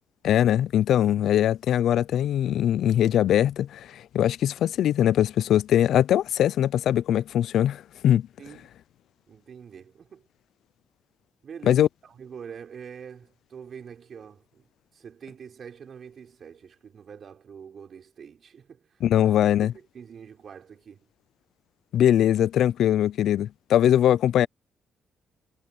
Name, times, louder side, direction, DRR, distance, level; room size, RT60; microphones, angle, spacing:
voice 1, 0.2-8.2 11.7-11.9 19.0-19.7 21.9-24.5, left 11 dB, 75° left, 0.4 m, -21 dB
voice 2, 8.4-8.7 9.3-10.2 11.4-14.7 14.9-19.2 19.6-21.1, right 7 dB, 50° right, 5.7 m, -45 dB
cardioid pair, 90°, 0 cm